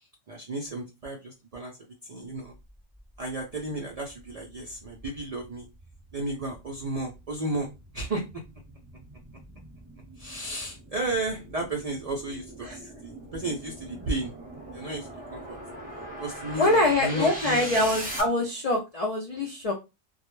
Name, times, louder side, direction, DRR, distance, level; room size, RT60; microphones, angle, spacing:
voice 1, 0.3-1.8 2.1-2.5 3.2-5.7 6.1-7.7 7.9-8.2 10.2-14.3 14.7-15.6 16.2-17.6, right 2 dB, 80° right, 0 dB, 0.3 m, -33 dB
sound 1, 4.1-18.2, right 1 dB, 10° right, 0.7 m, -41 dB
voice 2, 16.6-19.7, left 1 dB, 60° left, -1 dB, 0.3 m, -24 dB
2.3 x 2.1 x 3.0 m, 0.25 s
omnidirectional pair, 1.3 m